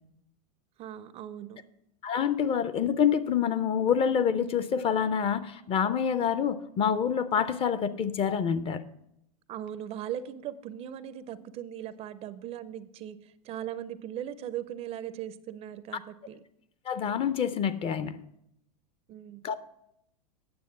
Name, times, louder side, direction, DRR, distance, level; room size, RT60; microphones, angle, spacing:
voice 1, 0.8-1.6 9.5-16.4 19.1-19.4, right 10 dB, 30° right, 0.4 m, -39 dB
voice 2, 2.0-8.8 16.9-18.2 19.4-19.6, left 7 dB, 30° left, 0.5 m, -27 dB
9.5 x 7.1 x 5.8 m
hypercardioid pair, 120°, 20 cm